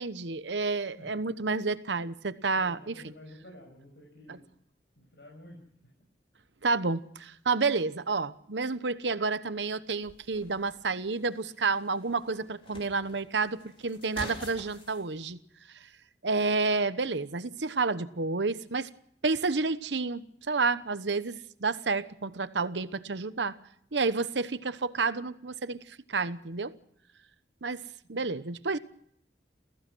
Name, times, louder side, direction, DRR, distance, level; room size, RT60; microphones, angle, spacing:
voice 1, 0.0-3.0 4.3-4.4 6.6-15.4 16.2-18.9 19.2-23.6 23.9-26.7 27.6-27.8 28.1-28.8, right 4 dB, 90° right, 1.0 m, -30 dB
voice 2, 2.5-4.5 5.0-5.6 28.0-28.5, left 1 dB, 75° left, 6.6 m, -51 dB
sound 1, 10.0-15.0, left 1 dB, 30° left, 4.3 m, -47 dB
29.5 x 15.0 x 6.2 m
head